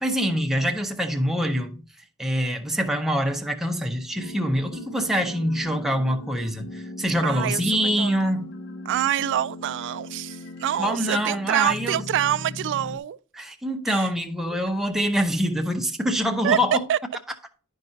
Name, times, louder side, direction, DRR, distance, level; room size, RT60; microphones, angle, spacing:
voice 1, 0.0-1.8 2.2-8.5 10.8-12.0 13.3-16.8, equal, ahead, 0.7 m, -25 dB
sound 1, 4.1-13.0, left 1 dB, 60° left, 0.8 m, -39 dB
voice 2, 7.2-8.3 8.9-13.2 13.9-14.1 14.5-14.6 16.4-16.6 16.9-17.0, right 11 dB, 55° right, 0.3 m, -26 dB
9.7 x 5.4 x 2.6 m
head